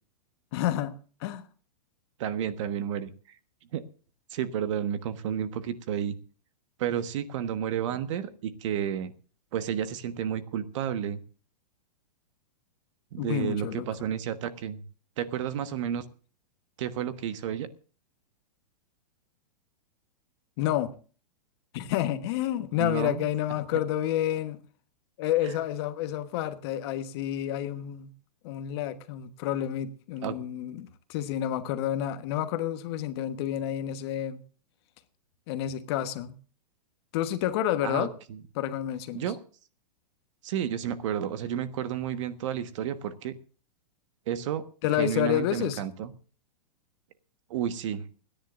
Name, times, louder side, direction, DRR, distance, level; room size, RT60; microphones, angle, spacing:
voice 1, 0.5-1.4 13.2-13.9 20.6-20.9 21.7-24.6 25.2-28.1 28.4-34.4 35.5-36.4 37.1-38.1 38.5-39.2 44.8-45.8, left 12 dB, 40° left, 1.2 m, -29 dB
voice 2, 2.2-3.4 3.7-3.8 4.3-6.2 6.8-9.1 9.5-11.2 13.1-14.8 15.2-16.0 16.8-17.7 22.8-23.2 25.4-25.5 30.2-30.4 37.8-38.4 39.1-39.4 40.4-43.3 44.3-44.6 45.0-46.1 47.5-48.0, right 9 dB, 50° right, 1.3 m, -31 dB
29.0 x 10.5 x 2.5 m
hypercardioid pair, 160°, 20 cm